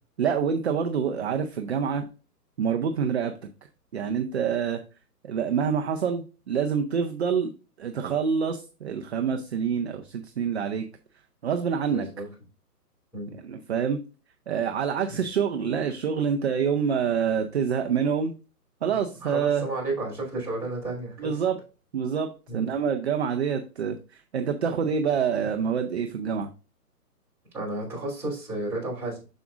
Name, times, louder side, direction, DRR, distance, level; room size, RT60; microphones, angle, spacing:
voice 1, 0.2-2.0 2.6-3.3 3.9-4.8 5.2-7.5 7.8-10.8 11.4-12.1 13.4-14.0 14.5-18.3 18.8-19.7 21.2-21.6 21.9-26.5, right 7 dB, 45° right, 5 dB, 0.6 m, -26 dB
voice 2, 11.9-12.3 13.1-13.4 19.2-21.4 22.5-22.7 27.5-29.2, right 2 dB, 5° right, -9 dB, 3.2 m, -32 dB
7.5 x 6.1 x 2.4 m, 0.33 s
hypercardioid pair, 160°, 48 cm